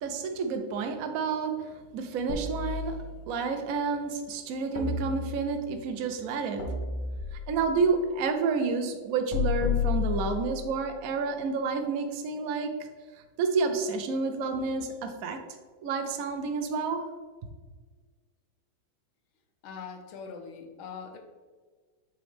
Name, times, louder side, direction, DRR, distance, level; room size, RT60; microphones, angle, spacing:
voice 1, 0.0-6.8 7.3-12.9 13.1-15.5 15.8-17.1, right 4 dB, 65° right, 5 dB, 0.8 m, -30 dB
sound 1, 2.3-3.4 4.8-5.7 6.6-7.7 9.3-10.7, left 6 dB, 65° left, 1.5 m, -31 dB
voice 2, 19.6-21.2, left 6 dB, 90° left, 4 dB, 1.7 m, -42 dB
8.0 x 4.3 x 3.3 m, 1.5 s
omnidirectional pair, 2.2 m